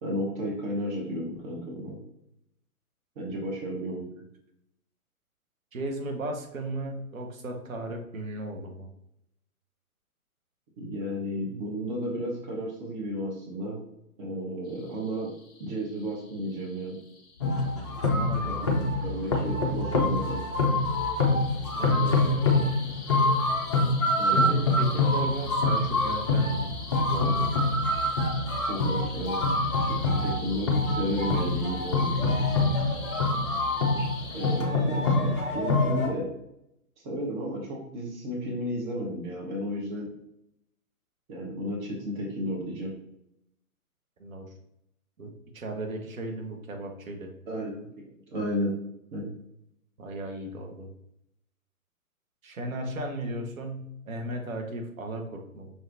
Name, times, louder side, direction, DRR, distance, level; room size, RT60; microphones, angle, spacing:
voice 1, 0.0-2.0 3.2-4.0 10.8-13.8 14.2-15.3 15.6-17.0 18.5-18.7 19.0-20.4 24.2-24.5 28.7-32.3 34.3-36.3 37.0-40.1 41.3-42.9 47.5-48.7 49.1-49.3, equal, 35° right, -2 dB, 1.2 m, -33 dB
voice 2, 5.7-8.9 18.2-18.8 21.7-22.7 24.2-26.7 27.1-27.5 44.2-44.4 45.2-47.3 50.0-50.9 52.4-55.7, right 1 dB, 65° right, 3 dB, 1.2 m, -36 dB
sound 1, 14.7-34.6, left 3 dB, 50° left, 1.2 m, -45 dB
sound 2, 17.4-36.1, left 2 dB, 25° left, 0.4 m, -25 dB
5.7 x 3.4 x 2.6 m, 0.79 s
hypercardioid pair, 135°, 44 cm